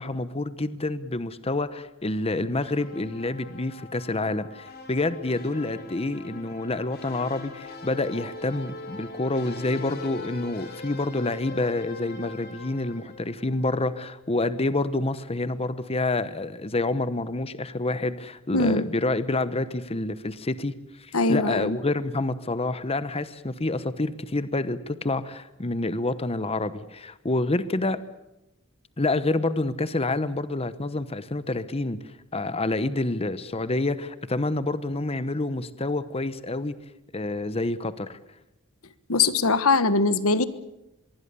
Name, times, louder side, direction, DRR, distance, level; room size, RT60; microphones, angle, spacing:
voice 1, 0.0-28.0 29.0-32.0 32.3-36.7 37.1-38.2, left 2 dB, 30° left, 13 dB, 1.0 m, -28 dB
sound 1, 2.6-13.8, left 3 dB, 50° left, 4.1 m, -42 dB
voice 2, 18.5-18.9 21.1-21.8 39.1-40.5, left 3 dB, 85° left, 13 dB, 1.3 m, -22 dB
25.0 x 22.5 x 6.9 m, 0.90 s
head